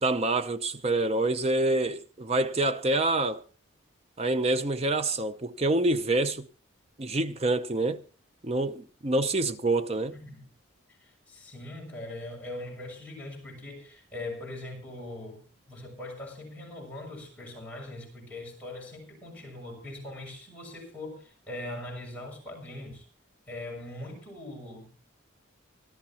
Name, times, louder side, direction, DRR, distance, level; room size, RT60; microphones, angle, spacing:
voice 1, 0.0-3.4 4.2-6.5 7.0-8.0 8.4-10.2, right 2 dB, 30° right, 0.6 m, -26 dB
voice 2, 10.1-10.4 11.0-23.1 23.5-24.9, left 1 dB, 5° left, 6.7 m, -41 dB
25.0 x 12.5 x 2.9 m
head